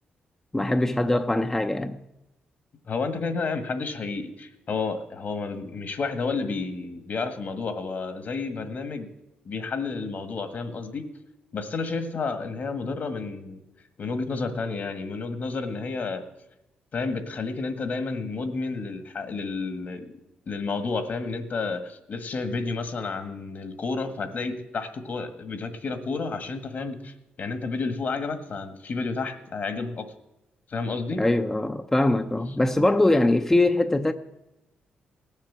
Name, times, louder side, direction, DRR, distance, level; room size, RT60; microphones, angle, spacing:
voice 1, 0.5-2.0 31.2-34.1, left 2 dB, 10° left, 0.6 m, -22 dB
voice 2, 2.9-9.1 9.4-11.0 11.5-13.6 14.0-16.2 16.9-20.1 20.5-30.0 30.7-31.2, left 4 dB, 55° left, 1.6 m, -31 dB
18.0 x 7.4 x 7.4 m
cardioid pair, 90°, 3 cm